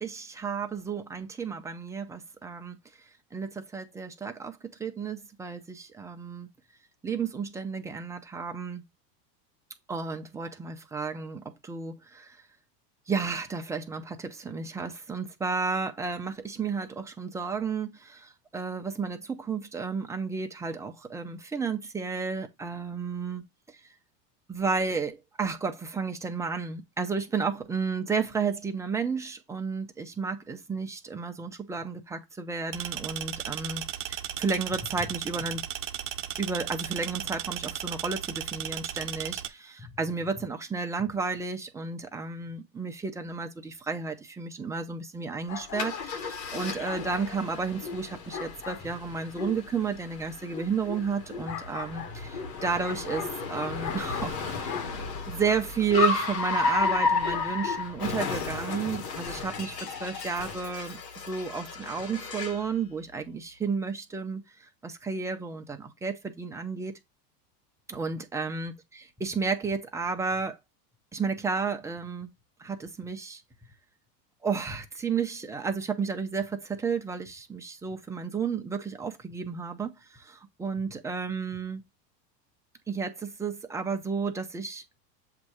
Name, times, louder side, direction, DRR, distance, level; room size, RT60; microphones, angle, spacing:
voice 1, 0.0-2.8 3.3-6.5 7.0-8.8 9.9-12.4 13.1-23.4 23.7-23.8 24.5-35.6 36.4-54.9 55.3-61.0 61.3-66.9 67.9-70.6 71.1-72.3 72.6-73.4 74.4-81.8 82.9-84.8, right 5 dB, 5° right, 0.4 m, -32 dB
sound 1, 32.7-39.5, right 11 dB, 40° right, 0.8 m, -35 dB
sound 2, 45.5-58.1, left 6 dB, 70° left, 1.4 m, -40 dB
Car, 45.8-62.7, left 4 dB, 85° left, 1.6 m, -33 dB
7.5 x 2.7 x 4.7 m
supercardioid pair, 120°, 49 cm